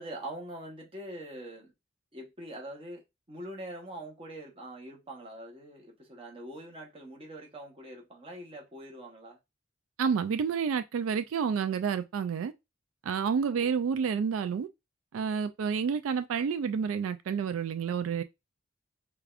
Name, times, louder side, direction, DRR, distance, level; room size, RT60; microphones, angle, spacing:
voice 1, 0.0-1.7 2.1-9.4 13.5-13.7, right 1 dB, 30° right, 1.0 m, -43 dB
voice 2, 10.0-12.5 13.0-14.7 15.1-18.2, right 6 dB, 85° right, 0.3 m, -29 dB
4.8 x 2.3 x 2.4 m
head